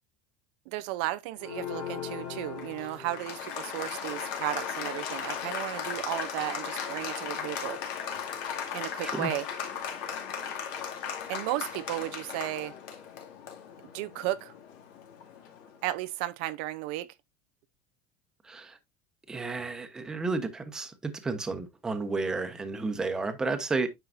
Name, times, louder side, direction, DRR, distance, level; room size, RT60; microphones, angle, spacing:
voice 1, 0.7-7.8 8.7-9.4 11.3-12.7 13.9-14.5 15.8-17.1, right 15 dB, 70° right, 0.6 m, -34 dB
Applause, 1.4-15.8, left 7 dB, 60° left, 2.2 m, -37 dB
voice 2, 18.4-18.8 19.3-23.9, right 3 dB, 10° right, 1.1 m, -32 dB
9.5 x 5.7 x 2.6 m
cardioid pair, 160°, 5 cm